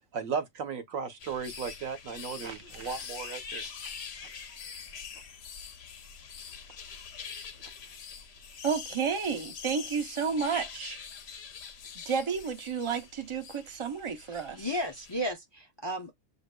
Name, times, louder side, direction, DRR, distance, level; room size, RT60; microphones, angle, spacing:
voice 1, 0.1-3.7, right 6 dB, 80° right, 1.3 m, -35 dB
sound 1, 1.2-15.3, left 6 dB, 60° left, 0.8 m, -44 dB
voice 2, 8.6-11.0 12.1-14.7, right 6 dB, 35° right, 0.5 m, -31 dB
voice 3, 14.3-16.1, equal, 40° left, 0.4 m, -34 dB
7.1 x 2.9 x 2.2 m
omnidirectional pair, 1.4 m